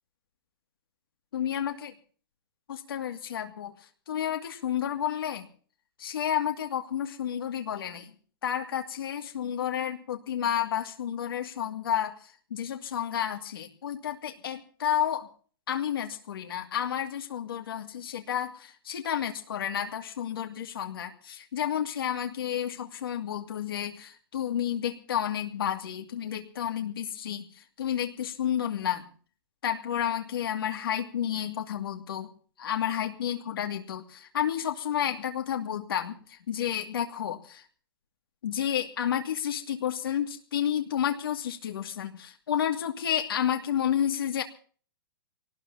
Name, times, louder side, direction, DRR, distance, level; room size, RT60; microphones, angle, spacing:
voice 1, 1.3-1.9 2.7-5.5 6.0-8.1 8.4-15.3 15.7-29.1 29.6-32.3 32.6-37.6 38.4-44.4, left 9 dB, 90° left, 3 dB, 2.4 m, -31 dB
24.5 x 19.0 x 2.8 m, 0.44 s
hypercardioid pair, 175°, 12 cm